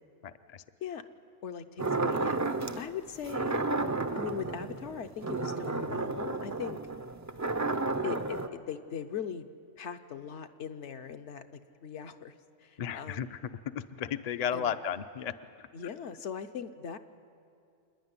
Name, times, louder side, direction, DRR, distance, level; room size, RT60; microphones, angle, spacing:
voice 1, 0.2-0.6 12.8-13.4 13.7-15.6, left 8 dB, 50° left, 10 dB, 0.5 m, -34 dB
voice 2, 1.4-2.4 2.8-3.6 4.1-6.8 8.0-9.5 9.8-12.3 12.6-13.3 14.5-14.8 15.7-17.0, left 8 dB, 70° left, 8 dB, 1.1 m, -40 dB
sound 1, 1.8-2.8 3.2-8.5, right 3 dB, 30° right, 0.3 m, -32 dB
28.0 x 10.0 x 9.6 m, 2.4 s
omnidirectional pair, 1.3 m